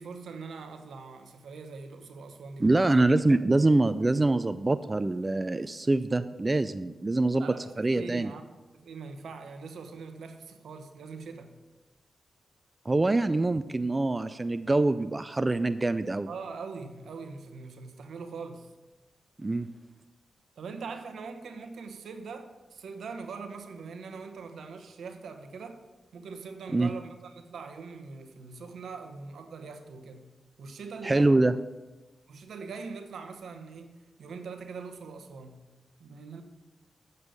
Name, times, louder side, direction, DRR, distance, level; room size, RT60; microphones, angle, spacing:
voice 1, 0.0-3.0 7.4-8.4 8.7-11.5 16.3-18.7 20.6-25.8 26.1-30.3 30.6-31.3 32.3-35.6 36.0-36.4, right 4 dB, 80° right, 0.9 m, -42 dB
voice 2, 2.6-7.5 7.8-8.3 12.9-16.3 19.4-19.7 26.7-26.9 31.0-31.5, right 2 dB, 30° right, 0.3 m, -25 dB
7.9 x 5.5 x 6.6 m
supercardioid pair, 40°, 0 cm